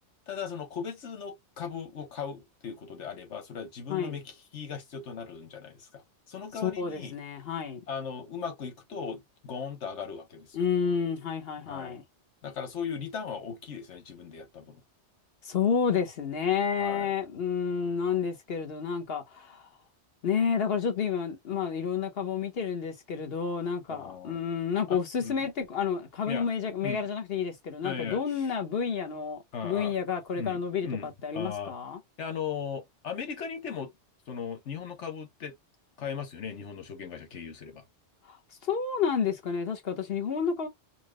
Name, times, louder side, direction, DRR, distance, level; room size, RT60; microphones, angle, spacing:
voice 1, 0.3-6.0 6.3-7.1 7.9-10.6 11.6-12.0 12.4-14.8 16.8-17.1 23.9-24.4 24.9-25.5 26.3-26.5 26.8-27.0 27.8-28.2 29.5-29.9 30.3-31.7 32.2-33.9 34.3-35.5 36.0-37.8, left 6 dB, 85° left, 1.3 m, -38 dB
voice 2, 6.6-7.8 10.5-12.0 15.4-19.7 20.2-32.0 38.3-38.4 38.6-40.7, left 6 dB, 60° left, 1.2 m, -30 dB
4.5 x 2.0 x 3.0 m
omnidirectional pair, 1.2 m